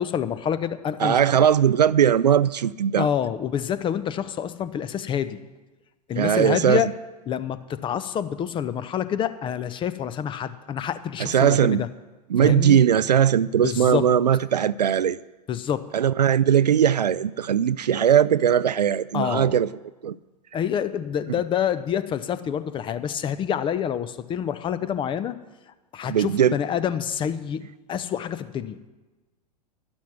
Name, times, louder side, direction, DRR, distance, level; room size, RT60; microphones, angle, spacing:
voice 1, 0.0-1.2 3.0-5.4 6.1-6.9 7.3-11.9 12.4-12.8 13.6-14.0 15.5-15.8 19.1-19.5 20.5-25.4 25.9-27.6 27.9-28.8, left 9 dB, 25° left, 0.6 m, -27 dB
voice 2, 1.0-3.1 6.2-6.8 11.2-11.8 12.3-15.2 15.9-19.7 20.0-20.2 26.1-26.6, right 9 dB, 80° right, 0.4 m, -19 dB
11.5 x 10.5 x 6.0 m
figure-of-eight pair, 95°, 21 cm